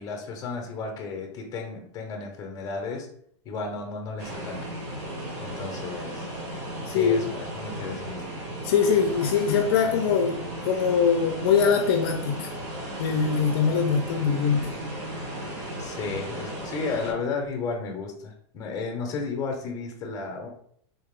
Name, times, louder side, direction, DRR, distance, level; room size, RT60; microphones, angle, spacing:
voice 1, 0.0-3.1 3.4-4.6 5.4-6.3 6.9-8.3 15.8-20.5, left 4 dB, 25° left, 2 dB, 0.8 m, -33 dB
sound 1, 4.2-17.1, right 1 dB, 50° right, 1.4 m, -35 dB
voice 2, 6.9-7.2 8.6-12.5 13.0-14.7, left 6 dB, 55° left, 3 dB, 0.5 m, -23 dB
4.0 x 2.3 x 3.6 m, 0.64 s
supercardioid pair, 160°, 15 cm